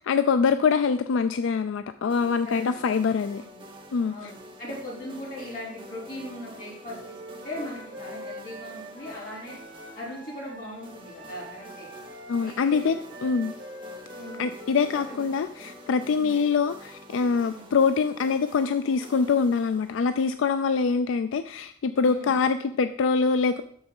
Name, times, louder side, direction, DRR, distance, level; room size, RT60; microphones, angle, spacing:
voice 1, 0.0-3.4 3.9-4.3 12.3-13.5 14.4-23.6, left 5 dB, 85° left, 10 dB, 0.4 m, -24 dB
sound 1, 2.1-20.7, equal, 25° right, 0.8 m, -47 dB
voice 2, 2.4-2.8 3.4-3.6 4.1-9.6 9.9-11.9 12.4-13.3 14.2-14.8 15.1-15.6 16.2-16.4 17.5-17.7 22.0-22.3, left 1 dB, 45° left, -7 dB, 4.0 m, -39 dB
Wind instrument woodwind instrument, 6.8-15.2, right 1 dB, 65° right, 1.8 m, -44 dB
6.6 x 5.6 x 5.4 m, 0.62 s
head